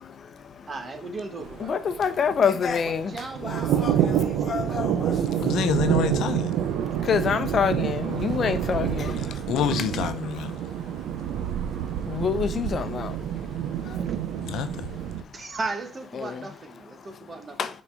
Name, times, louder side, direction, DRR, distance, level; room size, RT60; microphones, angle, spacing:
voice 1, 0.7-1.8 3.1-4.9 13.8-14.2 15.3-17.6, right 3 dB, 35° right, 1.3 m, -37 dB
sound 1, 1.4-15.2, right 10 dB, 85° right, 0.5 m, -28 dB
voice 2, 1.6-3.1 3.4-4.1 4.5-4.9 7.1-9.2 12.1-13.1 16.1-16.4 17.6-17.7, left 6 dB, 50° left, 0.8 m, -26 dB
voice 3, 5.4-6.6 9.4-10.5 14.4-14.9, left 7 dB, 85° left, 0.8 m, -27 dB
5.9 x 4.1 x 4.6 m
cardioid pair, 90°, 0 cm